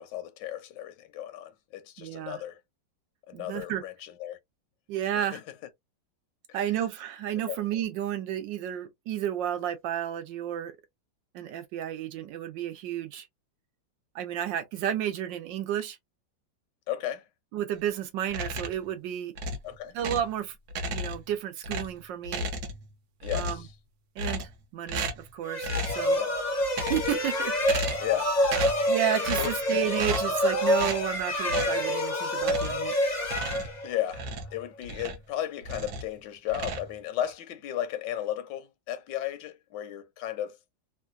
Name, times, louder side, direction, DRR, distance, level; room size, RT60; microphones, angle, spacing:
voice 1, 0.0-2.6 3.3-4.4 5.2-5.4 6.5-6.6 7.5-7.6 16.9-17.2 19.6-20.0 23.2-23.7 26.2-26.3 28.0-28.3 29.4-29.5 33.8-40.6, left 12 dB, 75° left, 1.2 m, -34 dB
voice 2, 2.0-2.4 3.3-3.8 4.9-5.4 6.5-10.8 11.3-13.3 14.1-16.0 17.5-19.3 19.9-20.5 20.9-22.5 23.3-23.6 24.2-25.7 25.9-26.2 26.8-27.6 28.9-32.9, right 10 dB, 80° right, 1.4 m, -32 dB
sound 1, 18.3-18.9 19.4-20.4 20.7-21.3 21.6-22.9 23.2-23.7 24.2-24.6 24.9-25.3 25.6-26.1 26.6-27.2 27.6-28.2 28.4-28.9 29.2-29.6 30.0-30.4 30.8-31.0 31.5-31.8 32.4-32.9 33.2-35.3 35.6-36.1 36.5-37.3, right 1 dB, 65° right, 1.3 m, -34 dB
sound 2, 25.5-34.2, left 1 dB, 35° left, 0.7 m, -27 dB
3.7 x 2.3 x 2.5 m
omnidirectional pair, 2.0 m